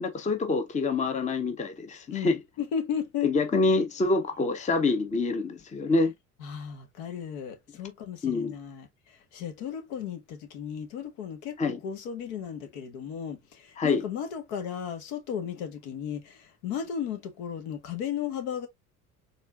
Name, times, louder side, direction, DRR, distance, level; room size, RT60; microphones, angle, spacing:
voice 1, 0.0-2.4 3.2-6.1 8.2-8.5 11.6-11.8 13.8-14.0, left 3 dB, 15° left, 0.8 m, -26 dB
voice 2, 2.1-3.3 6.4-18.7, left 8 dB, 60° left, 1.3 m, -35 dB
4.3 x 3.7 x 2.4 m
hypercardioid pair, 70°, 43 cm